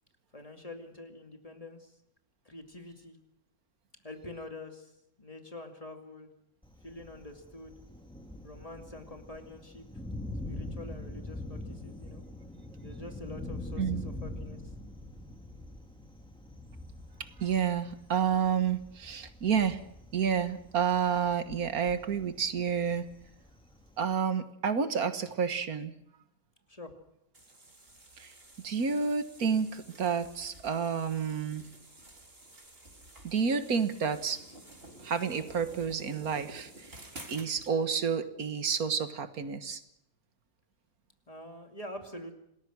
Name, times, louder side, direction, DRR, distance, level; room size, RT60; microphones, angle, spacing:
voice 1, 0.3-1.9 2.4-3.2 4.0-4.9 5.2-6.3 6.8-7.8 8.4-9.9 10.5-12.2 12.8-14.6 26.7-27.0 41.3-42.3, left 2 dB, 25° left, 5 dB, 2.5 m, -46 dB
Thunder, 6.6-24.1, left 1 dB, 5° left, 2.6 m, -44 dB
voice 2, 17.4-19.8 20.1-23.1 24.0-25.9 28.2-28.3 28.6-31.7 33.2-34.4 35.0-36.7 37.3-39.8, right 6 dB, 85° right, 10 dB, 1.9 m, -30 dB
sound 1, 27.3-37.7, right 1 dB, 40° right, 4.0 m, -51 dB
27.5 x 19.5 x 6.1 m, 0.78 s
omnidirectional pair, 1.5 m